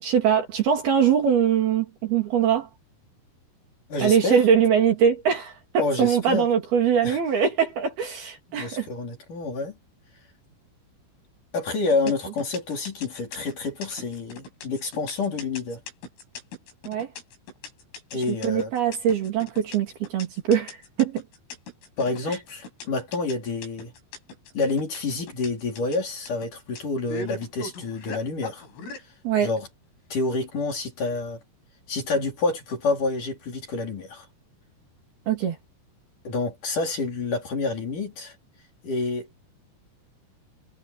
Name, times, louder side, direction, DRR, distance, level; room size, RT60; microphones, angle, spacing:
voice 1, 0.0-2.7 4.0-8.9 16.9-17.1 18.4-21.2 29.2-29.5 35.3-35.6, right 8 dB, 55° right, 4.4 m, -22 dB
voice 2, 3.9-4.4 5.8-6.5 7.0-7.2 8.5-9.8 11.5-15.8 18.1-18.7 22.0-23.9 24.5-28.7 29.4-29.7 30.1-31.4 31.9-34.3 36.2-38.4 38.8-39.4, left 3 dB, 40° left, 5.2 m, -28 dB
sound 1, 11.9-29.0, left 3 dB, 80° left, 8.7 m, -39 dB
omnidirectional pair, 5.8 m